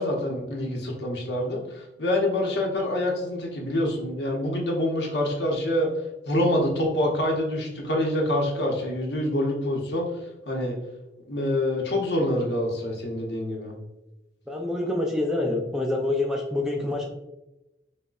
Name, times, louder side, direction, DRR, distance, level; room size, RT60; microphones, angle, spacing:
voice 1, 0.0-5.9 6.3-10.1 10.5-10.7 11.3-13.7, left 1 dB, 75° left, 0 dB, 0.8 m, -26 dB
voice 2, 14.5-17.1, left 2 dB, 5° right, 0 dB, 0.3 m, -26 dB
6.1 x 2.1 x 2.3 m, 0.96 s
head